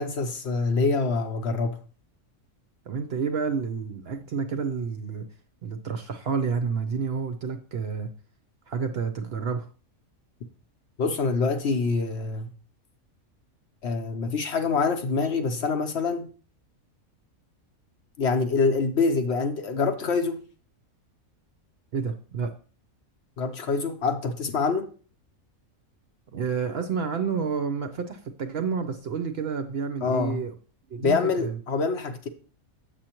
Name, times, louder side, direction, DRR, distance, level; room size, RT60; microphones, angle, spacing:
voice 1, 0.0-1.7 11.0-12.5 13.8-16.3 18.2-20.4 23.4-24.9 30.0-30.4 31.0-32.3, left 4 dB, 60° left, 7 dB, 0.9 m, -25 dB
voice 2, 2.9-5.3 5.6-8.1 8.7-9.7 21.9-22.5 26.3-30.5 30.9-31.6, right 6 dB, 60° right, 6 dB, 0.7 m, -29 dB
7.7 x 6.8 x 2.9 m, 0.40 s
omnidirectional pair, 1.5 m